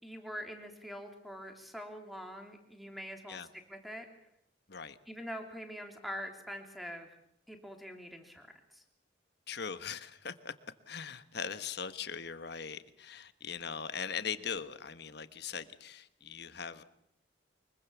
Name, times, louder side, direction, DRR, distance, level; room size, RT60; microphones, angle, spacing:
voice 1, 0.0-4.1 5.1-7.2 7.5-8.8, equal, ahead, 4 dB, 3.2 m, -44 dB
voice 2, 9.5-10.5 10.9-16.8, left 6 dB, 60° left, 12 dB, 1.3 m, -40 dB
24.5 x 22.0 x 7.1 m, 0.74 s
head